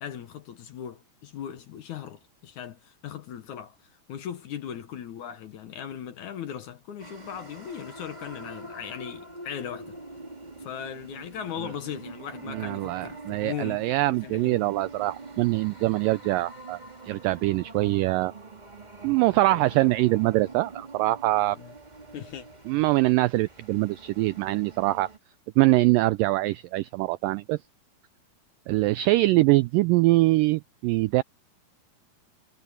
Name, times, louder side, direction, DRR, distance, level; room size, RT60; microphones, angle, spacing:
voice 1, 0.0-10.0 10.6-14.7 19.4-19.9 21.5-21.7 22.1-22.5, left 9 dB, 65° left, 2.1 m, -38 dB
sound 1, 7.0-25.2, right 2 dB, 20° right, 1.1 m, -45 dB
voice 2, 12.5-16.8 17.0-18.3 19.0-21.6 22.7-25.1 25.6-27.6 28.7-31.2, right 19 dB, 85° right, 1.9 m, -23 dB
omnidirectional pair, 4.4 m